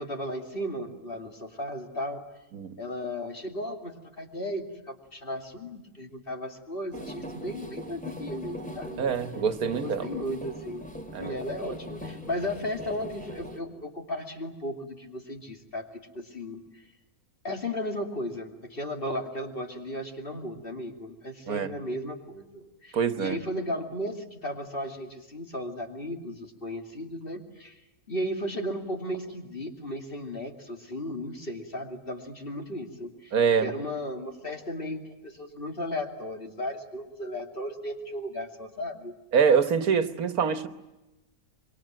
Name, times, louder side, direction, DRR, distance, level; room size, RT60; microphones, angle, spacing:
voice 1, 0.0-2.2 2.8-9.0 9.7-10.8 11.2-16.8 17.4-27.8 28.1-33.3 33.6-39.1, left 1 dB, 40° left, 2.9 m, -35 dB
sound 1, 6.9-13.6, equal, 5° left, 2.3 m, -40 dB
voice 2, 9.0-10.1 11.1-11.4 21.5-21.7 22.9-23.4 33.3-33.7 39.3-40.7, right 6 dB, 80° right, 1.7 m, -25 dB
26.0 x 23.5 x 9.0 m
omnidirectional pair, 1.5 m